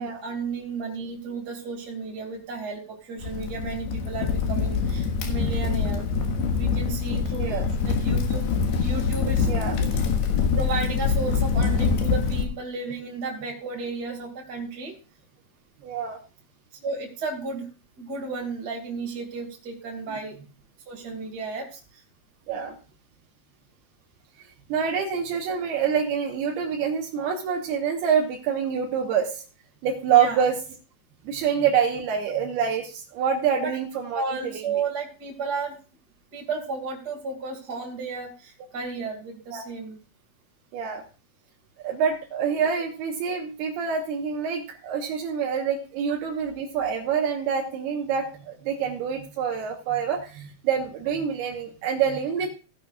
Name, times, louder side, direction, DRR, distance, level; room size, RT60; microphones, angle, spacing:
voice 1, 0.0-6.0 6.5-8.5 8.8-9.5 10.5-15.0 16.8-17.7 18.0-20.4 20.9-22.0 30.1-30.4 33.6-33.7 34.1-35.8 36.3-40.0, right 4 dB, 30° right, 0 dB, 2.2 m, -33 dB
Crackle, 3.2-12.4, left 5 dB, 85° left, 3.6 m, -24 dB
voice 2, 7.4-7.7 9.4-10.0 10.3-10.6 15.8-16.2 22.5-22.8 24.4-29.4 29.8-30.6 31.2-34.7 39.5-39.6 40.7-41.0 41.8-52.5, right 7 dB, 80° right, 0 dB, 3.2 m, -26 dB
16.0 x 10.5 x 2.4 m, 0.36 s
omnidirectional pair, 4.5 m